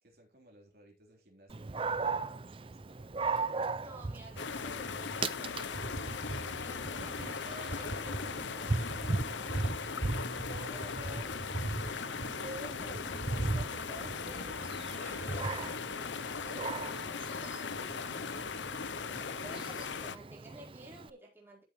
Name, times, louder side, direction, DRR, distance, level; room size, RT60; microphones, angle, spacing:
voice 1, 0.0-3.3, right 1 dB, 55° right, 3.5 m, -61 dB
Dog, 1.5-21.1, right 3 dB, 30° right, 0.5 m, -38 dB
voice 2, 3.7-9.6 9.9-11.4 11.8-21.6, right 1 dB, 15° right, 4.0 m, -52 dB
sound 1, 4.4-20.2, left 6 dB, 90° left, 0.7 m, -39 dB
13.5 x 6.8 x 3.1 m
head